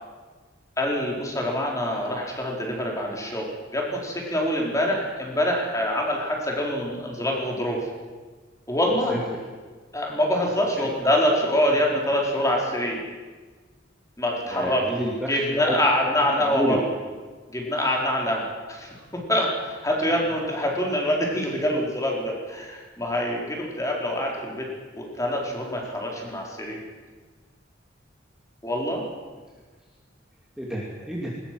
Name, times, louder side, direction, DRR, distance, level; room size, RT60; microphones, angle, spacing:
voice 1, 0.8-7.8 8.7-9.2 9.9-13.0 14.2-14.8 15.3-16.8 17.5-18.9 19.3-24.7 25.0-26.8 28.6-29.0, left 1 dB, 15° left, -1 dB, 4.7 m, -25 dB
voice 2, 10.8-11.1 14.5-15.8 16.0-16.1 16.5-16.8 30.6-31.3, equal, 5° right, -4 dB, 2.7 m, -29 dB
20.0 x 20.0 x 7.9 m, 1.4 s
head